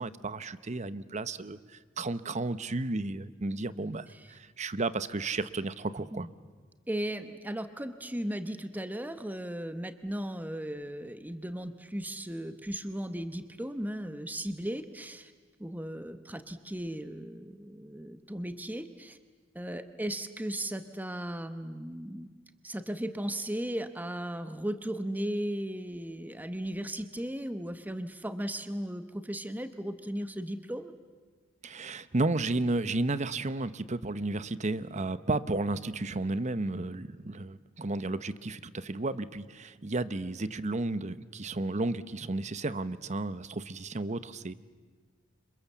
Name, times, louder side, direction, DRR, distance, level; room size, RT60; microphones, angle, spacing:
voice 1, 0.0-6.3 31.6-44.5, right 2 dB, 35° right, 14 dB, 0.9 m, -33 dB
voice 2, 6.9-15.3 15.6-19.2 19.5-22.3 22.6-30.9, right 1 dB, 10° right, 9 dB, 1.0 m, -36 dB
29.5 x 27.0 x 7.3 m, 1.5 s
head